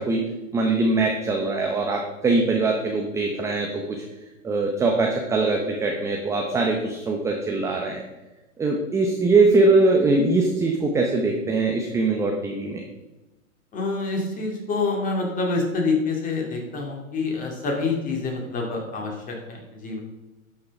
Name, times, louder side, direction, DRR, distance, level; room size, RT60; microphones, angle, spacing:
voice 1, 0.5-3.8 4.4-8.0 8.6-12.8, right 3 dB, 5° right, 1 dB, 0.7 m, -22 dB
voice 2, 13.7-19.6 19.8-20.0, left 3 dB, 20° left, 0 dB, 2.5 m, -26 dB
11.5 x 5.9 x 5.3 m, 1.0 s
hypercardioid pair, 135°, 42 cm